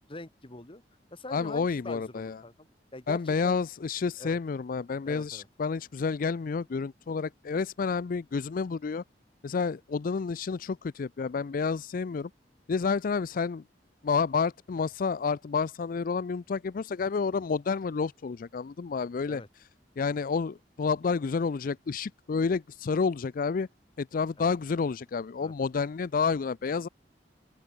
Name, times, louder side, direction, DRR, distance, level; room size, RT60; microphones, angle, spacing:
voice 1, 0.1-0.8 1.1-3.6 4.2-4.4 5.1-5.5 19.3-19.5 24.4-24.5 25.4-25.5, left 2 dB, 30° left, 1.9 m, -44 dB
voice 2, 1.3-2.4 3.1-9.0 9.4-12.3 12.7-13.6 14.0-19.7 20.0-23.7 24.0-26.9, left 5 dB, 50° left, 0.4 m, -30 dB
open air
head